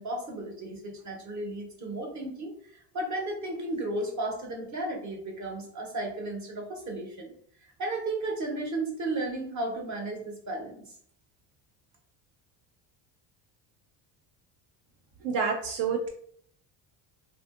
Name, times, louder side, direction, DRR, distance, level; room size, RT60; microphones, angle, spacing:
voice 1, 0.0-7.3 7.6-10.9, right 2 dB, 40° right, 1 dB, 0.9 m, -34 dB
voice 2, 15.2-16.1, right 5 dB, 65° right, 1 dB, 0.5 m, -28 dB
2.7 x 2.4 x 2.4 m, 0.63 s
supercardioid pair, 95°, 45 cm